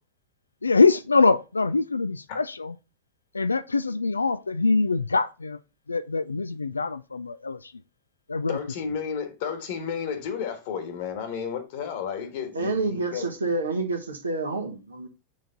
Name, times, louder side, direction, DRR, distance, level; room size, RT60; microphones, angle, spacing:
voice 1, 0.6-2.8 3.3-5.6 5.9-7.7 8.3-8.6, left 4 dB, 80° left, 0.3 m, -23 dB
voice 2, 8.5-13.3, left 7 dB, 50° left, 1.5 m, -32 dB
voice 3, 12.5-15.1, right 3 dB, 75° right, 1.2 m, -28 dB
6.4 x 3.9 x 3.9 m
figure-of-eight pair, 90°, 0 cm